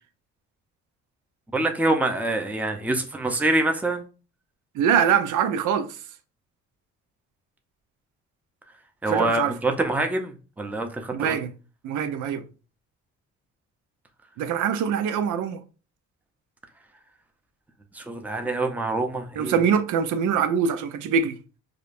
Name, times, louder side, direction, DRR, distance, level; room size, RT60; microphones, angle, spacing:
voice 1, 1.5-4.0 9.0-11.4 17.9-19.6, right 2 dB, 5° right, 0.6 m, -25 dB
voice 2, 4.7-5.9 9.1-9.5 11.1-11.5 11.8-12.4 14.4-15.6 19.4-21.4, right 7 dB, 80° right, 0.5 m, -23 dB
4.9 x 2.3 x 2.5 m
cardioid pair, 90°, 30 cm